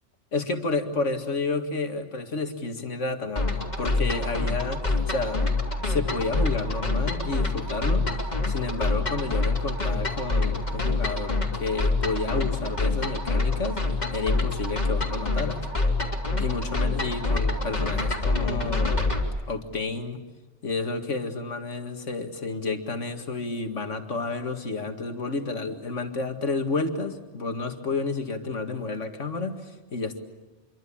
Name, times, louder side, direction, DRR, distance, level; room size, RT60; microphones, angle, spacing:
voice 1, 0.3-5.4 5.8-8.1 8.5-13.8 14.1-15.6 16.4-19.1 19.5-20.2 20.6-30.2, left 3 dB, 75° left, 6 dB, 2.3 m, -30 dB
sound 1, 3.4-19.2, left 2 dB, 35° left, 3.2 m, -26 dB
27.0 x 24.0 x 8.7 m, 1.1 s
omnidirectional pair, 1.3 m